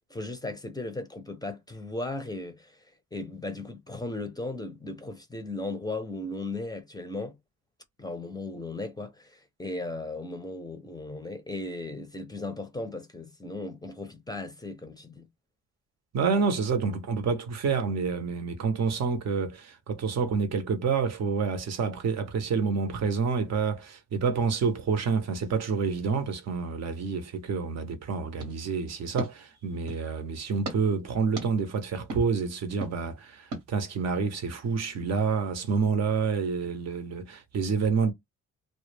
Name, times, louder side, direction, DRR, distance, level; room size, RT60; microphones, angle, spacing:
voice 1, 0.1-2.8 3.1-7.4 8.0-15.3, left 2 dB, 15° left, 0.5 m, -36 dB
voice 2, 16.1-38.1, right 5 dB, 60° right, 0.7 m, -28 dB
sound 1, 28.4-30.1 30.6-30.8 31.4-31.5 32.1-32.2 32.8-32.9 33.5-33.6, right 2 dB, 90° right, 1.0 m, -38 dB
2.1 x 2.1 x 3.1 m
cardioid pair, 90°, 30 cm